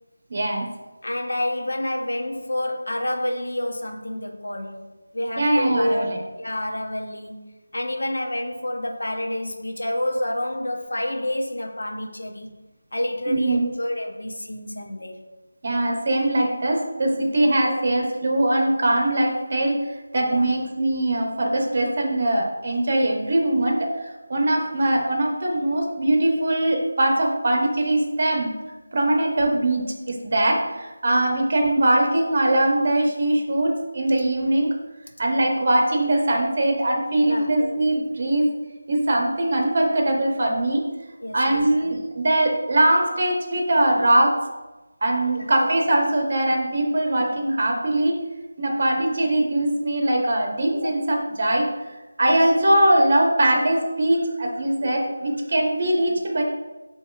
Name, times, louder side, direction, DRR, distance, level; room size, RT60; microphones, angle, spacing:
voice 1, 0.3-0.7 5.4-6.2 13.3-13.7 15.6-19.9 20.1-28.5 28.9-34.8 35.2-38.5 38.9-40.9 41.3-44.4 45.0-48.2 48.6-51.7 52.2-56.4, right 1 dB, 45° right, 2 dB, 0.9 m, -21 dB
voice 2, 1.0-6.1 6.4-12.5 12.9-15.2 20.3-20.5 37.3-37.6 41.2-41.6 45.3-45.5 52.2-52.4, left 1 dB, 80° left, 3 dB, 0.7 m, -28 dB
7.0 x 3.0 x 2.4 m, 1.1 s
figure-of-eight pair, 165°, 0 cm